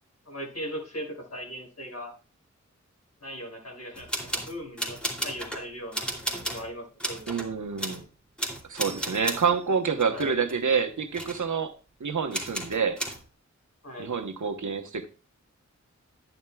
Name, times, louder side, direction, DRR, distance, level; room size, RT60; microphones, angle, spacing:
voice 1, 0.3-2.1 3.2-5.0 5.2-7.3 10.1-10.4 13.8-14.1, equal, 60° left, -1 dB, 6.2 m, -39 dB
sound 1, 3.9-5.6 5.9-6.7 7.0-7.5 7.8-8.0 8.4-9.5 10.0-10.9 11.1-11.4 12.3-13.2, right 1 dB, 5° left, 2.8 m, -34 dB
voice 2, 7.3-8.0 8.7-11.7 12.0-13.0 14.0-15.1, right 6 dB, 85° right, 6 dB, 1.1 m, -27 dB
11.0 x 10.5 x 2.3 m, 0.33 s
wide cardioid pair, 75°, 29 cm